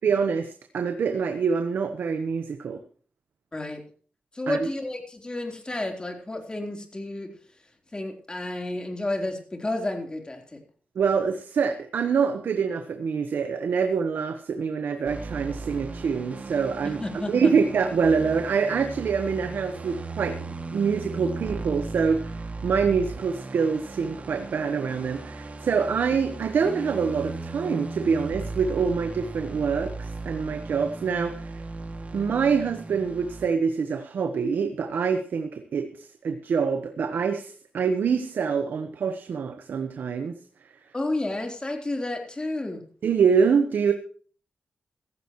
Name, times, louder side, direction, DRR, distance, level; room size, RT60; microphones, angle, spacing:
voice 1, 0.0-2.8 4.5-4.7 10.9-31.6 32.1-40.4 43.0-43.9, right 6 dB, 80° right, 7 dB, 1.2 m, -25 dB
voice 2, 3.5-3.8 4.3-7.3 7.9-10.6 17.0-17.5 40.9-42.8, left 2 dB, 25° left, 4 dB, 3.8 m, -31 dB
sound 1, 15.0-33.5, right 3 dB, 45° right, 2.3 m, -37 dB
15.5 x 15.0 x 3.1 m, 0.42 s
cardioid pair, 70°, 3 cm